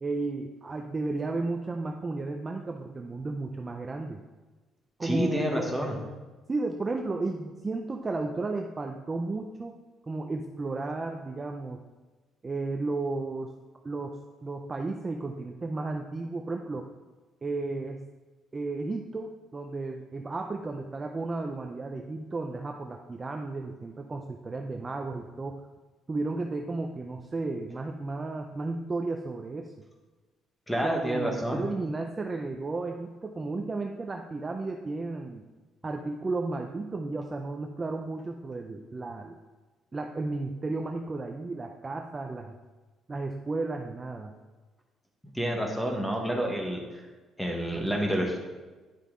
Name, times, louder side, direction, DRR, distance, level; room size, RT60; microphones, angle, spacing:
voice 1, 0.0-4.2 5.0-5.8 6.5-9.8 10.0-11.8 12.4-13.5 13.8-16.9 17.4-18.0 18.5-25.6 26.1-29.7 30.8-35.4 35.8-39.4 39.9-42.5 43.1-44.3, right 3 dB, 20° right, 3 dB, 0.4 m, -33 dB
voice 2, 5.0-5.9 30.7-31.6 45.3-47.0 47.4-48.4, equal, 5° left, 1 dB, 1.2 m, -28 dB
10.0 x 5.6 x 3.7 m, 1.3 s
cardioid pair, 165°, 0 cm